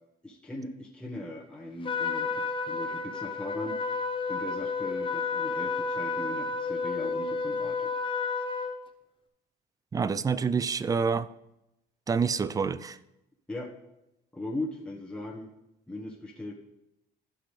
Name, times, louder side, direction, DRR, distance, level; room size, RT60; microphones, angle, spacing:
voice 1, 0.2-4.0 4.3-7.9 13.5-13.7 14.3-15.5 15.9-16.5, left 1 dB, 5° left, 1.3 m, -39 dB
Trumpet, 1.8-8.7, left 4 dB, 30° left, 0.8 m, -31 dB
voice 2, 9.9-11.3 12.1-13.0, right 5 dB, 20° right, 0.4 m, -27 dB
15.0 x 6.0 x 3.3 m
cardioid pair, 110°, 17 cm